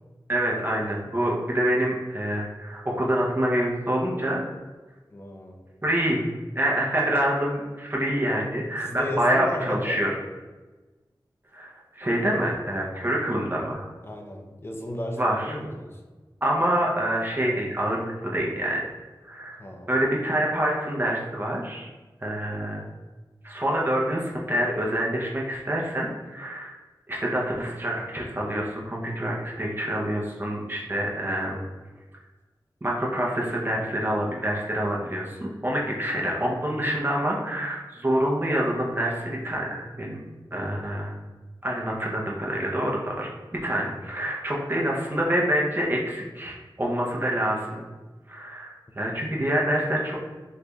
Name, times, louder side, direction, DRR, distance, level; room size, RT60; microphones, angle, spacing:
voice 1, 0.3-4.4 5.8-6.2 6.5-10.1 11.5-11.7 12.0-13.9 15.2-15.5 16.4-18.8 19.2-19.6 19.9-21.9 22.2-22.9 23.4-26.7 27.1-31.6 32.8-41.1 41.6-47.8 48.3-50.2, right 1 dB, 25° right, -3 dB, 0.7 m, -26 dB
voice 2, 5.1-5.6 8.8-10.0 14.0-16.0 19.6-19.9, left 1 dB, 30° left, 2 dB, 0.5 m, -33 dB
4.0 x 3.2 x 2.3 m, 1.3 s
wide cardioid pair, 65°, 8 cm